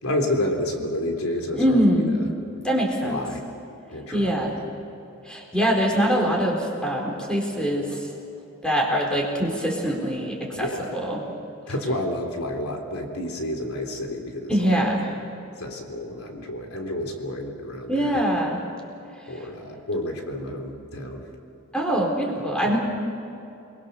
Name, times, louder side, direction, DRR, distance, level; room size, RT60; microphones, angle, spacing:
voice 1, 0.0-2.2 3.0-3.4 3.9-4.5 10.5-10.9 11.7-14.9 15.6-18.2 19.3-21.3 22.6-22.8, left 1 dB, 85° left, 3 dB, 3.5 m, -30 dB
voice 2, 1.5-2.1 2.6-3.2 4.1-4.5 5.3-8.0 8.6-11.4 14.5-15.1 17.9-18.6 21.7-22.8, equal, 5° left, 0 dB, 4.2 m, -23 dB
29.0 x 22.0 x 6.8 m, 2.9 s
head